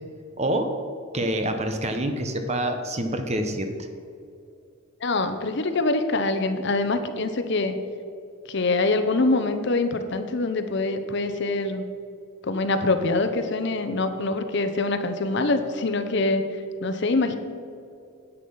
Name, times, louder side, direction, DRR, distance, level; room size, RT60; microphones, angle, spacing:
voice 1, 0.4-0.7 1.1-3.7, right 1 dB, 30° right, 6 dB, 0.9 m, -26 dB
voice 2, 5.0-7.8 8.5-11.8 12.5-16.4 16.8-17.4, left 3 dB, 55° left, 8 dB, 0.8 m, -24 dB
9.7 x 8.4 x 5.5 m, 2.5 s
head